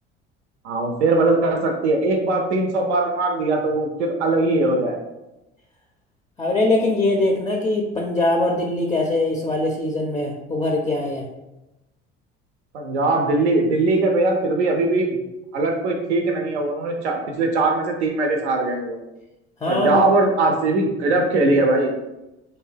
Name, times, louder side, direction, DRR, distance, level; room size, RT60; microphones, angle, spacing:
voice 1, 0.6-5.0 12.7-15.1 15.5-19.0 19.7-21.9, right 2 dB, 90° right, 2 dB, 0.5 m, -20 dB
voice 2, 6.4-11.3 19.6-20.1, left 2 dB, 10° left, 1 dB, 0.4 m, -22 dB
2.6 x 2.2 x 3.3 m, 0.96 s
hypercardioid pair, 65°, 33 cm